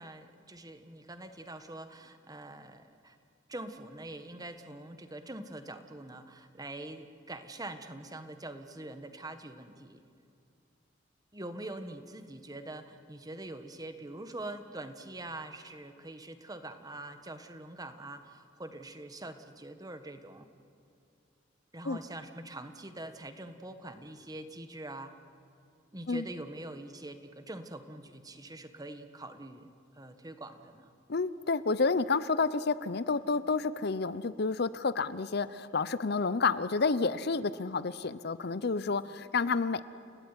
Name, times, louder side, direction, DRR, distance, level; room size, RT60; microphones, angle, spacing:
voice 1, 0.0-3.2 3.5-10.0 11.3-20.5 21.7-25.1 25.9-29.7 29.9-30.9, right 2 dB, 20° right, 9 dB, 1.4 m, -44 dB
voice 2, 31.1-39.8, left 4 dB, 55° left, 15 dB, 0.7 m, -30 dB
29.5 x 17.0 x 9.8 m, 2.6 s
head